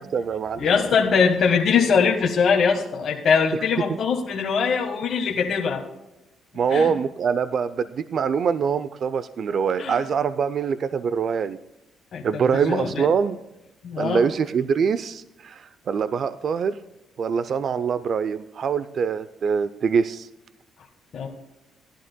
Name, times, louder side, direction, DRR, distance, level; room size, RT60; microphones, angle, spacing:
voice 1, 0.0-0.7 6.5-11.6 12.2-13.4 14.0-16.8 17.2-20.3, right 6 dB, 55° right, 14 dB, 0.4 m, -24 dB
voice 2, 0.6-5.8 6.7-6.9 9.8-10.0 12.1-13.0 13.8-14.2 21.1-21.3, left 6 dB, 60° left, -1 dB, 1.4 m, -22 dB
16.5 x 11.0 x 2.2 m, 0.96 s
cardioid pair, 90°, 0 cm